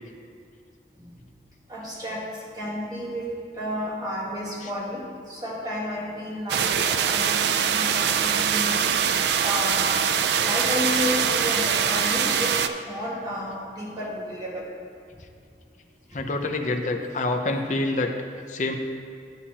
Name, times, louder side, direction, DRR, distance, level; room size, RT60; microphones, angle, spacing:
voice 1, 1.7-2.2 2.5-8.8 9.4-10.0 10.4-12.6 12.9-14.7, equal, 20° right, -5 dB, 1.6 m, -32 dB
sound 1, 6.5-12.7, right 7 dB, 70° right, 0.4 m, -23 dB
voice 2, 16.1-18.1 18.5-18.7, left 2 dB, 45° left, 3 dB, 0.6 m, -26 dB
10.5 x 8.6 x 2.9 m, 2.3 s
head